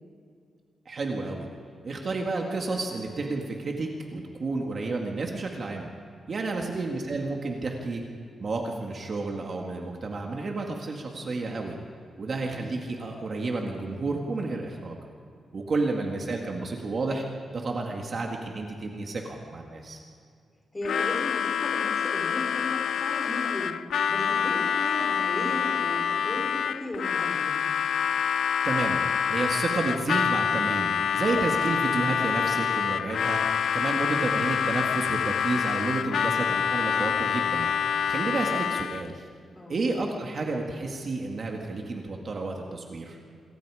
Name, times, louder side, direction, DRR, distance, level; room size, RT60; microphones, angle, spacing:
voice 1, 0.9-1.5 1.8-5.9 6.3-8.0 8.4-11.8 12.2-15.0 15.5-17.2 17.5-20.0 28.6-29.0 29.3-33.4 33.7-37.7 38.1-39.2 39.7-43.2, right 3 dB, 40° right, 1 dB, 2.1 m, -31 dB
voice 2, 12.4-12.8 15.8-15.9 20.7-23.7 24.1-27.6 33.9-34.2 39.5-39.8, left 1 dB, 15° left, -1 dB, 5.3 m, -36 dB
Harmonica, 20.8-39.1, left 8 dB, 70° left, 0.6 m, -26 dB
27.0 x 23.5 x 5.0 m, 2.3 s
wide cardioid pair, 175°, 0 cm